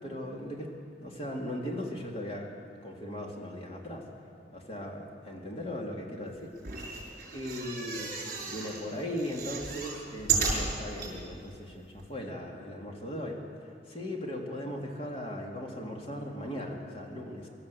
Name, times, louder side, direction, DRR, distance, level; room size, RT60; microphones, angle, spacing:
voice 1, 0.0-0.7 1.0-2.5 2.8-4.0 4.5-6.5 7.3-8.2 8.4-17.5, left 1 dB, 30° left, 0 dB, 2.6 m, -38 dB
sound 1, 6.6-8.8 9.2-11.1 11.7-11.8 12.0-12.1, right 5 dB, 50° right, 5.9 m, -33 dB
23.5 x 13.0 x 8.5 m, 2.5 s
head